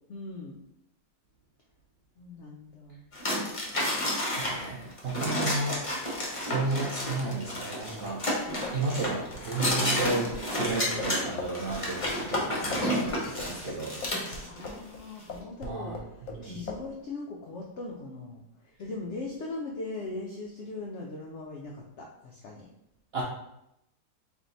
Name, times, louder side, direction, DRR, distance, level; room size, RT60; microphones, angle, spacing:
voice 1, 0.1-0.6 2.2-3.0 4.3-4.9 14.4-22.7, left 2 dB, 85° left, -1 dB, 0.6 m, -40 dB
sound 1, 3.1-14.8, left 1 dB, 35° left, 0.5 m, -31 dB
voice 2, 4.3-14.6 15.6-16.0 16.2-16.6 23.1-23.2, right 3 dB, 70° right, -4 dB, 0.6 m, -34 dB
sound 2, 8.6-15.0 15.3-16.4 16.7-16.9, left 4 dB, 65° left, 1.0 m, -39 dB
3.5 x 2.6 x 3.9 m, 0.83 s
omnidirectional pair, 1.8 m